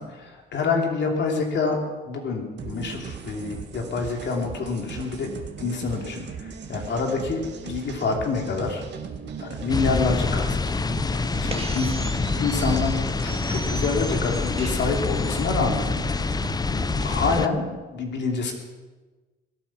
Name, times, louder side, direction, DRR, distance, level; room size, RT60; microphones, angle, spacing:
voice 1, 0.0-1.8 2.0-5.3 5.6-8.8 9.4-10.6 11.1-15.9 17.0-18.5, left 4 dB, 60° left, 2 dB, 2.9 m, -27 dB
sound 1, 2.6-17.4, right 6 dB, 60° right, 1.9 m, -38 dB
sound 2, 9.7-17.5, left 4 dB, 20° left, 0.5 m, -26 dB
sound 3, 10.1-15.5, right 4 dB, 30° right, 1.8 m, -40 dB
22.0 x 8.9 x 6.0 m, 1.2 s
cardioid pair, 90°, 20 cm